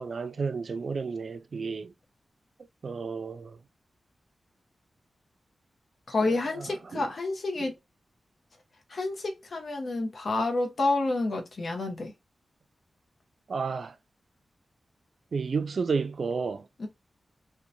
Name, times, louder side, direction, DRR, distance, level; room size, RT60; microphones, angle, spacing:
voice 1, 0.0-1.9 2.8-3.6 6.2-7.1 7.6-7.7 13.5-14.0 15.3-16.7, right 5 dB, 65° right, 0.4 m, -32 dB
voice 2, 6.1-7.7 8.9-12.1 16.8-16.9, left 2 dB, 60° left, 0.8 m, -29 dB
2.7 x 2.2 x 2.5 m
wide cardioid pair, 95°, 0 cm